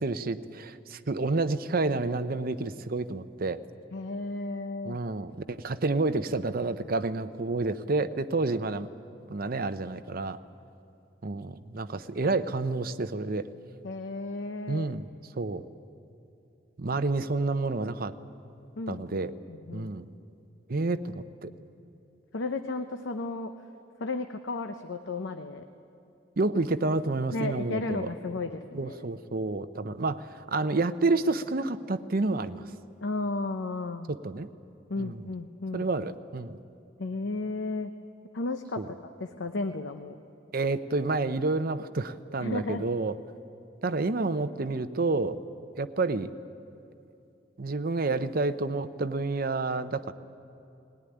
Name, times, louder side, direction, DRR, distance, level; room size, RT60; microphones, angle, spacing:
voice 1, 0.0-3.6 4.8-8.9 9.3-10.4 11.2-13.5 14.7-15.1 15.4-15.7 16.8-18.1 18.9-19.3 19.7-20.1 20.7-21.5 26.4-28.1 28.7-32.7 34.1-34.5 35.0-35.2 35.7-36.6 38.8-38.9 40.5-43.1 43.8-45.4 45.8-46.3 47.6-50.1, right 3 dB, 50° right, 11 dB, 0.7 m, -29 dB
voice 2, 3.9-5.0 13.8-14.9 18.8-19.0 19.5-19.9 22.3-23.5 24.0-25.7 27.3-29.0 33.0-34.1 34.9-35.9 37.0-37.9 38.3-38.8 39.2-40.2 42.4-42.8, left 3 dB, 85° left, 7 dB, 0.8 m, -33 dB
19.5 x 18.0 x 10.0 m, 2.7 s
head